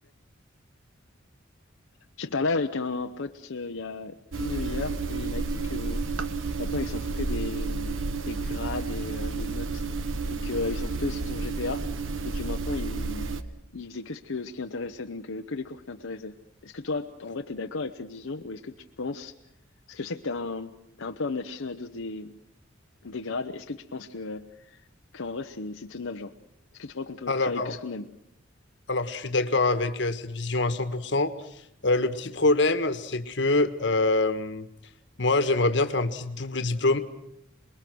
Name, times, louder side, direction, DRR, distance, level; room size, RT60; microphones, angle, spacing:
voice 1, 2.2-6.1 6.6-9.8 10.3-11.8 12.2-13.4 13.7-16.3 16.6-19.3 19.9-20.7 21.0-22.4 23.0-24.8 25.1-26.3 26.7-28.1, left 3 dB, 85° left, 5 dB, 0.9 m, -34 dB
sound 1, 4.3-13.4, right 3 dB, 85° right, 1.3 m, -31 dB
voice 2, 27.3-27.7 28.9-31.3 31.8-34.7 35.2-37.0, left 2 dB, 60° left, 10 dB, 1.5 m, -25 dB
27.5 x 21.0 x 6.2 m, 0.78 s
head